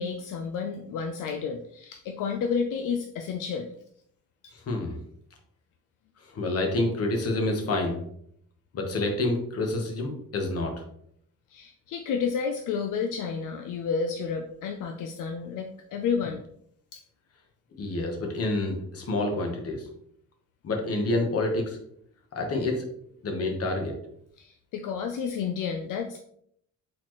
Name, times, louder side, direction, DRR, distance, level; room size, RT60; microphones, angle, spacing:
voice 1, 0.0-3.7 11.5-16.4 16.9-17.0 24.4-26.2, left 6 dB, 75° left, 5 dB, 0.5 m, -31 dB
voice 2, 4.7-5.0 6.3-8.0 8.7-10.7 17.8-19.8 20.6-21.8 22.3-22.9 23.2-23.9, left 2 dB, 50° left, 3 dB, 1.1 m, -28 dB
4.2 x 4.2 x 3.0 m, 0.69 s
wide cardioid pair, 165°, 32 cm